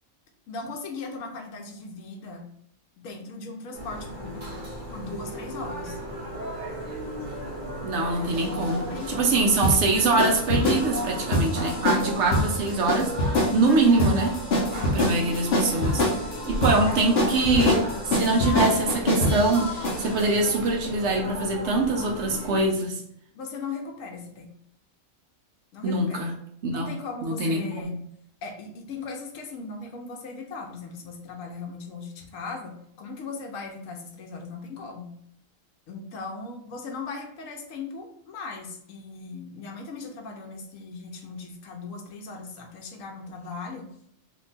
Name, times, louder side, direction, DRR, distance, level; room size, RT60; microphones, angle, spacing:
voice 1, 0.5-2.5 3.0-6.0 8.1-9.4 14.6-15.4 16.7-17.4 23.3-24.5 25.7-26.3 26.7-27.9 28.4-35.1 35.9-43.9, left 4 dB, 80° left, 1 dB, 1.0 m, -38 dB
sound 1, 3.7-22.7, right 1 dB, 30° right, 1.1 m, -35 dB
voice 2, 7.8-14.3 14.9-16.1 16.5-23.0 25.8-26.3 26.6-26.9 27.2-28.0, right 3 dB, 70° right, 1 dB, 0.9 m, -24 dB
sound 2, 8.3-20.3, left 1 dB, 60° left, 0.9 m, -25 dB
2.9 x 2.2 x 3.9 m, 0.70 s
omnidirectional pair, 1.3 m